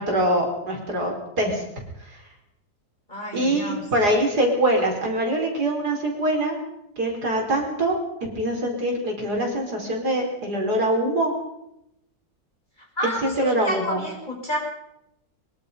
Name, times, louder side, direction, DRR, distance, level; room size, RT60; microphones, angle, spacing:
voice 1, 0.0-1.6 2.0-2.2 3.3-6.6 7.0-11.3 13.0-14.0, right 1 dB, 55° right, 1 dB, 5.1 m, -24 dB
voice 2, 3.1-3.8 13.0-14.6, equal, 25° left, -1 dB, 5.9 m, -30 dB
24.0 x 22.5 x 5.3 m, 0.81 s
omnidirectional pair, 2.0 m